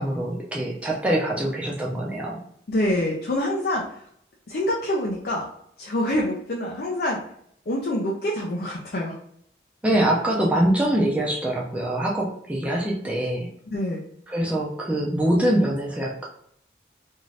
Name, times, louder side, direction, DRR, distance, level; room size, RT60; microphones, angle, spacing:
voice 1, 0.0-2.4 9.8-13.5 14.3-16.3, right 1 dB, 5° right, -3 dB, 0.4 m, -24 dB
voice 2, 2.7-3.9 4.5-5.5 5.8-7.2 7.7-9.2 13.7-14.0, left 1 dB, 55° left, -2 dB, 0.5 m, -26 dB
2.6 x 2.5 x 3.1 m, 0.69 s
head